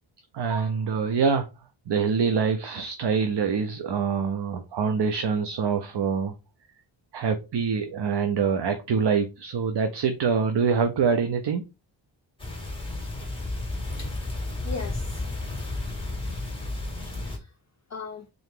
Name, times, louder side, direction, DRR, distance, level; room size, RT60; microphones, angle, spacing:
voice 1, 0.3-1.5 1.9-6.3 7.1-11.6, right 5 dB, 55° right, 0.6 m, -25 dB
sound 1, 12.4-17.4, left 2 dB, 10° left, 1.6 m, -32 dB
voice 2, 13.9-14.2 14.6-15.3 16.6-16.7 17.0-17.6 17.9-18.3, left 4 dB, 35° left, 0.4 m, -39 dB
3.8 x 2.8 x 3.6 m
wide cardioid pair, 105°, 49 cm